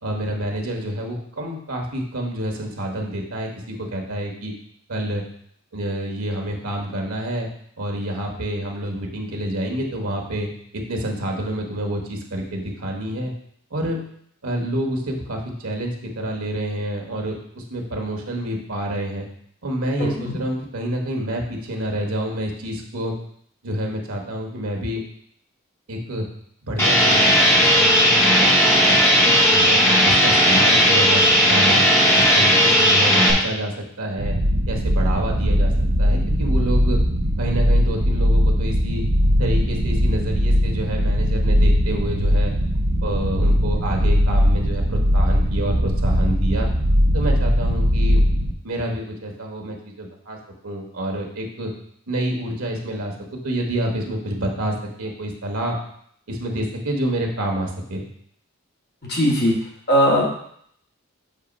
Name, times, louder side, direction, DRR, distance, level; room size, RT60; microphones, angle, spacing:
voice 1, 0.0-4.5 4.9-5.2 5.7-7.5 7.8-13.3 13.7-14.0 14.4-19.3 19.6-23.1 23.6-25.0 25.9-26.3 26.6-29.8 30.0-31.9 32.2-34.4 34.7-35.7 36.0-37.0 37.4-39.0 39.4-42.5 43.0-46.7 47.1-48.2 48.6-50.4 50.6-51.7 52.1-55.7 56.3-58.0, right 1 dB, 85° right, 1 dB, 1.2 m, -28 dB
voice 2, 20.0-20.4 59.1-59.5 59.9-60.2, equal, 50° left, -3 dB, 1.2 m, -19 dB
sound 1, 26.8-33.3, equal, 10° left, 0.8 m, -15 dB
sound 2, 34.2-48.5, equal, 70° right, 0.7 m, -19 dB
6.5 x 3.0 x 5.1 m, 0.67 s
head